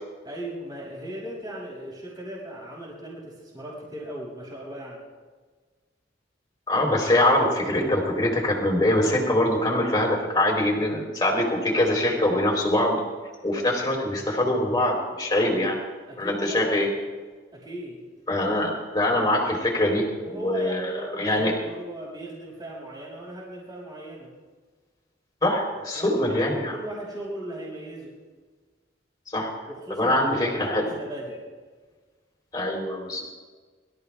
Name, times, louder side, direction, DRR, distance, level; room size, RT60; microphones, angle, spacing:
voice 1, 0.2-5.0 15.5-15.6 16.1-16.9 17.5-18.1 20.2-24.3 25.9-28.2 29.7-31.4, right 1 dB, 25° right, -5 dB, 6.3 m, -37 dB
voice 2, 6.7-13.0 13.4-15.7 16.2-16.9 18.3-21.5 25.4-26.7 29.3-29.5 29.9-30.9 32.5-33.2, left 1 dB, 20° left, 0 dB, 4.1 m, -23 dB
24.5 x 14.5 x 3.6 m, 1.4 s
head